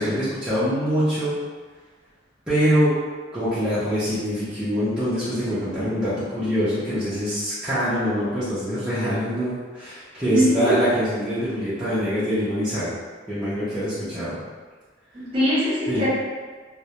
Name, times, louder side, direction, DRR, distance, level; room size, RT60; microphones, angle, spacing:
voice 1, 0.0-1.4 2.5-3.0 3.3-12.9 13.3-14.4 15.9-16.0, equal, 5° right, -15 dB, 0.6 m, -24 dB
voice 2, 10.3-10.7 15.1-16.1, equal, 30° right, -10 dB, 0.9 m, -21 dB
2.4 x 2.0 x 2.8 m, 1.4 s
head